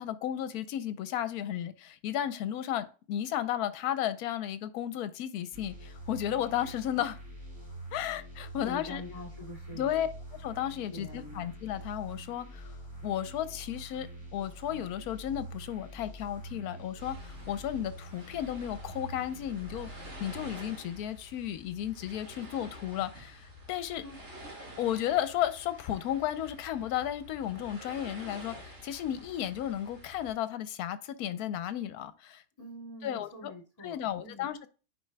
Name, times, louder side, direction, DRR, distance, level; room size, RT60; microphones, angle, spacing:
voice 1, 0.0-7.2 7.9-9.0 9.7-10.1 10.4-12.7 13.0-19.9 20.2-24.0 24.8-32.4 33.0-33.5 33.8-34.7, left 11 dB, 75° left, 12 dB, 1.1 m, -34 dB
sound 1, 5.5-21.1, right 1 dB, 15° right, 3.4 m, -46 dB
voice 2, 8.5-10.1 10.9-11.5 23.9-24.2 32.6-34.5, left 1 dB, 25° left, -1 dB, 2.5 m, -45 dB
sound 2, 17.0-30.4, equal, 45° right, 2.3 m, -49 dB
9.6 x 5.0 x 2.2 m, 0.35 s
omnidirectional pair, 1.6 m